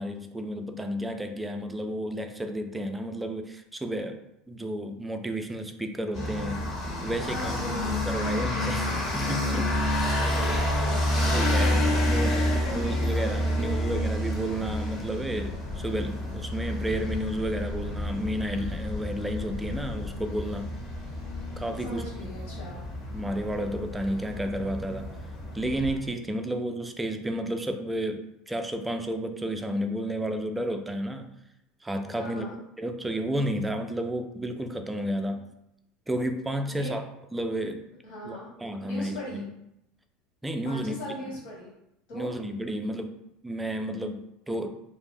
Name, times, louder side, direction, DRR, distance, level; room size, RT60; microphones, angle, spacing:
voice 1, 0.0-4.2 4.5-6.6 7.0-9.7 11.3-20.7 21.6-22.1 23.1-25.1 25.5-31.3 31.8-32.5 32.8-35.5 36.1-37.0 37.3-37.8 38.3-39.5 40.4-41.0 42.1-43.1 43.4-44.7, right 1 dB, 10° right, 6 dB, 0.3 m, -32 dB
sound 1, 6.1-26.0, left 1 dB, 45° left, 0.8 m, -29 dB
voice 2, 7.2-8.1 10.2-13.1 13.4-13.9 21.8-22.8 32.1-32.5 36.7-36.9 38.0-38.5 38.8-39.4 40.6-41.7 42.1-42.3, left 1 dB, 60° left, -5 dB, 1.2 m, -39 dB
2.4 x 2.0 x 3.2 m, 0.82 s
hypercardioid pair, 75°, 0 cm